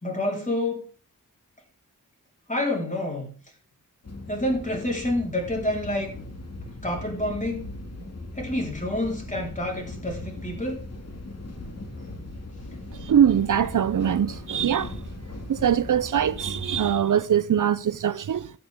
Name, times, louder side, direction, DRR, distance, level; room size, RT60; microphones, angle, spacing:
voice 1, 0.0-0.9 2.5-3.4 4.3-6.1 6.8-7.7 8.4-10.8, left 1 dB, 25° left, 4.2 m, -28 dB
sound 1, 4.0-16.9, left 2 dB, 50° left, 2.1 m, -39 dB
voice 2, 13.0-14.9 15.5-18.5, right 9 dB, 70° right, 0.5 m, -22 dB
14.5 x 8.7 x 3.6 m
wide cardioid pair, 75°, 33 cm